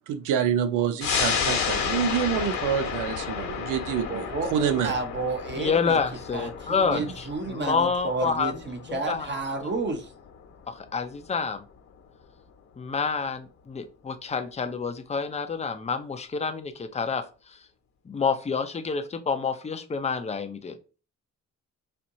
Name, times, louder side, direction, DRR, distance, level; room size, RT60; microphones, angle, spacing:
voice 1, 0.1-4.9, right 8 dB, 90° right, 0.6 m, -27 dB
sound 1, 1.0-12.0 12.4-12.5, left 7 dB, 65° left, 1.2 m, -32 dB
voice 2, 4.1-6.0 6.3-10.1, right 3 dB, 35° right, 0.9 m, -31 dB
voice 3, 5.6-8.6 8.9-9.3 10.7-11.6 12.8-17.6 18.1-20.8, left 5 dB, 20° left, 0.6 m, -28 dB
4.4 x 2.6 x 2.6 m
cardioid pair, 90°, 30 cm